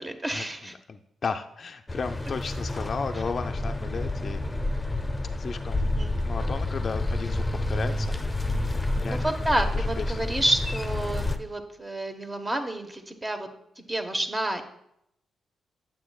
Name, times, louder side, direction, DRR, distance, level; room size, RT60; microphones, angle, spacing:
voice 1, 0.0-0.7 5.8-6.2 9.1-13.5 13.8-14.7, right 1 dB, 25° right, 5 dB, 1.0 m, -29 dB
voice 2, 0.9-4.4 5.3-5.9 6.2-8.2 8.7-9.2 9.8-10.2, left 5 dB, 55° left, 6 dB, 0.4 m, -34 dB
sound 1, 1.9-11.4, left 2 dB, 20° left, 0.7 m, -29 dB
9.3 x 7.2 x 2.3 m, 0.77 s
supercardioid pair, 45°, 0 cm